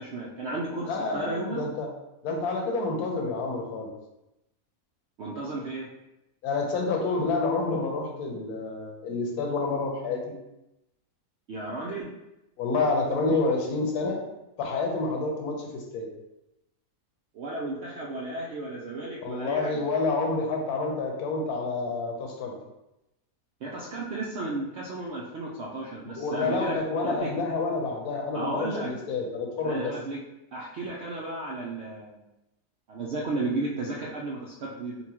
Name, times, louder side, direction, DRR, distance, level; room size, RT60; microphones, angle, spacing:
voice 1, 0.0-1.6 5.2-5.9 11.5-12.1 17.3-19.8 23.6-27.3 28.3-28.9 29.6-30.2 30.5-32.2 32.9-34.9, right 2 dB, 80° right, -4 dB, 0.6 m, -33 dB
voice 2, 0.8-1.9 2.2-3.9 6.4-10.4 12.6-14.2 14.6-16.1 19.2-22.5 26.0-29.9, left 3 dB, 70° left, 1 dB, 1.2 m, -28 dB
5.5 x 2.2 x 2.9 m, 0.92 s
omnidirectional pair, 1.7 m